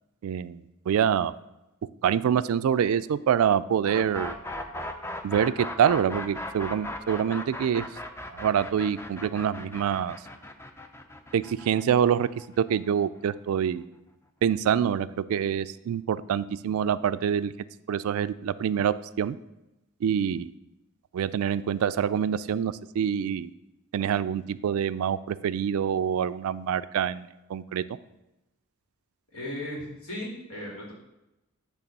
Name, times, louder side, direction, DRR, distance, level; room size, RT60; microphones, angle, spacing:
voice 1, 0.2-1.3 2.0-4.4 5.2-7.8 8.3-10.2 11.3-12.3 12.6-13.9 14.4-17.5 17.9-19.4 20.0-20.5 21.1-23.5 23.9-27.8, right 8 dB, 70° right, 15 dB, 0.3 m, -26 dB
sound 1, 3.8-13.7, left 1 dB, 10° left, 0.4 m, -38 dB
voice 2, 29.3-30.9, left 1 dB, 80° left, -3 dB, 2.5 m, -36 dB
8.4 x 3.5 x 5.3 m, 0.94 s
head